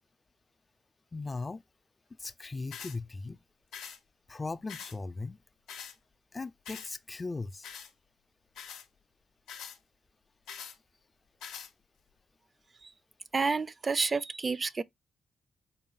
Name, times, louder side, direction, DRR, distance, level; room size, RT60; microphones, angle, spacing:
voice 1, 1.1-1.6 2.2-3.4 4.3-5.4 6.3-7.7, left 3 dB, 35° left, 0.3 m, -38 dB
sound 1, 2.7-3.0 3.7-4.0 4.7-5.0 5.7-5.9 6.7-6.9 7.6-7.9 8.5-8.9 9.5-9.8 10.5-10.8 11.4-11.7, left 7 dB, 85° left, 0.5 m, -44 dB
voice 2, 13.3-14.8, right 4 dB, 40° right, 0.3 m, -29 dB
3.9 x 2.0 x 3.9 m
supercardioid pair, 45°, 0 cm